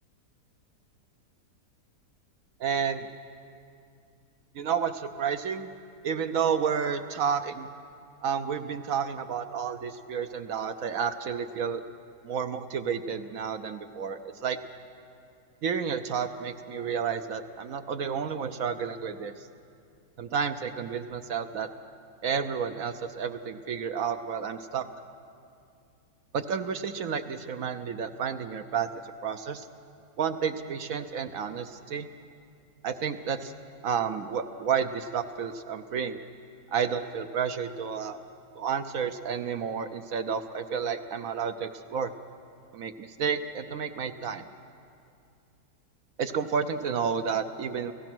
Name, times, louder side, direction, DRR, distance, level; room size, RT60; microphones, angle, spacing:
voice 1, 2.6-3.1 4.5-5.7 6.0-7.7 8.2-11.8 12.2-14.6 15.6-19.3 20.2-21.7 22.2-24.9 26.3-29.7 30.2-32.1 32.8-33.5 33.8-36.2 36.7-38.2 38.5-42.1 42.7-44.5 46.2-47.9, right 7 dB, 65° right, 8 dB, 1.0 m, -31 dB
29.0 x 15.5 x 6.1 m, 2.4 s
omnidirectional pair, 1.8 m